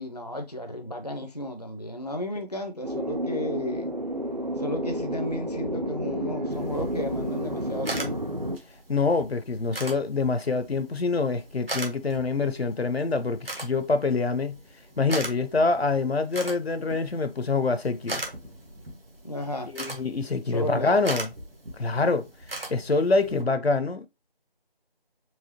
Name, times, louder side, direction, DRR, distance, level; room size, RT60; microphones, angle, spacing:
voice 1, 0.0-3.9 4.6-8.3 19.2-19.7 20.5-21.0, left 1 dB, 40° left, 0.4 m, -33 dB
sound 1, 2.8-8.6, equal, 45° right, 0.5 m, -31 dB
sound 2, 6.5-23.4, right 2 dB, 65° right, 1.4 m, -40 dB
voice 2, 8.9-14.6 15.0-18.2 19.7-21.3 21.8-22.3 22.7-24.1, left 3 dB, 85° left, 0.7 m, -25 dB
4.8 x 3.1 x 2.7 m
figure-of-eight pair, 170°, 31 cm